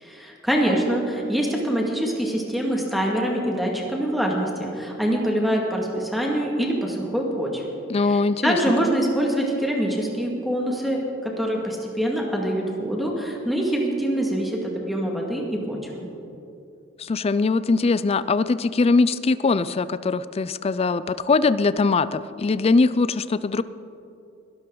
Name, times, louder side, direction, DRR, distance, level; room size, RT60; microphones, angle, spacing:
voice 1, 0.0-7.6 8.0-16.0, right 1 dB, ahead, -1 dB, 2.0 m, -25 dB
voice 2, 7.9-8.6 17.0-23.6, left 3 dB, 30° left, 16 dB, 0.4 m, -21 dB
21.5 x 12.5 x 3.9 m, 2.7 s
head